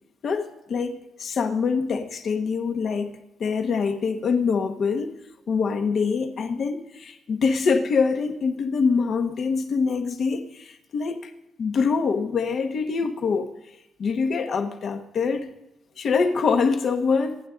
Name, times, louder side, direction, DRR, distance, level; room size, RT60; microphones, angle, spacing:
voice 1, 0.2-5.1 5.5-11.3 11.6-13.5 14.0-15.5 16.0-17.4, left 5 dB, 55° left, 1.6 m, -24 dB
27.0 x 9.9 x 3.9 m
cardioid pair, 90°, 0 cm